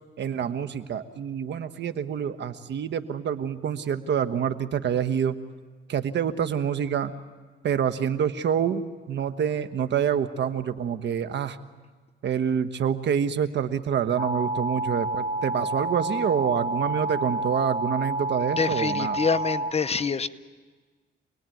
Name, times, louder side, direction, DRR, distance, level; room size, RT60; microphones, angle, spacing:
voice 1, 0.2-5.4 5.9-7.1 7.6-11.6 12.2-19.2, right 8 dB, 65° right, 11 dB, 1.2 m, -27 dB
sound 1, 14.2-19.7, right 1 dB, 30° right, 1.8 m, -29 dB
voice 2, 18.6-20.3, left 5 dB, 30° left, 12 dB, 0.8 m, -26 dB
27.5 x 20.0 x 9.2 m, 1.4 s
cardioid pair, 90°, 20 cm